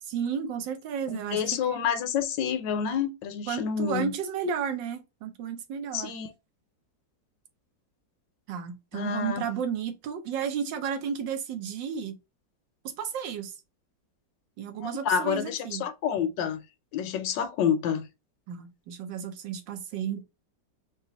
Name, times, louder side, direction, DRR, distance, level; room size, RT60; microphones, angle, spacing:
voice 1, 0.0-1.6 3.5-6.2 8.5-12.2 12.8-13.5 14.6-15.9 18.5-20.2, right 7 dB, 85° right, 1.5 m, -33 dB
voice 2, 1.1-4.1 5.9-6.3 8.9-9.4 14.8-16.6 16.9-18.1, left 8 dB, 85° left, 1.4 m, -28 dB
4.0 x 2.4 x 3.9 m
omnidirectional pair, 1.9 m